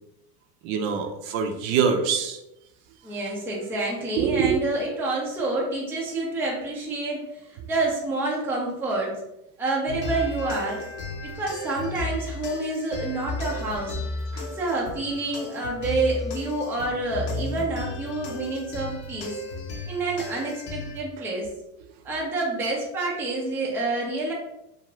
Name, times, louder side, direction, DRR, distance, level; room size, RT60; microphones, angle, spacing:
voice 1, 0.6-2.4 4.2-4.6 14.3-14.5, right 6 dB, 55° right, 5 dB, 0.5 m, -24 dB
voice 2, 3.0-9.2 9.6-10.8 11.2-14.0 14.4-19.4 19.9-21.5 22.0-24.3, right 2 dB, 5° right, -3 dB, 0.4 m, -28 dB
sound 1, 9.9-21.0, left 2 dB, 40° left, 0.6 m, -34 dB
2.5 x 2.4 x 3.0 m, 0.88 s
supercardioid pair, 105°, 49 cm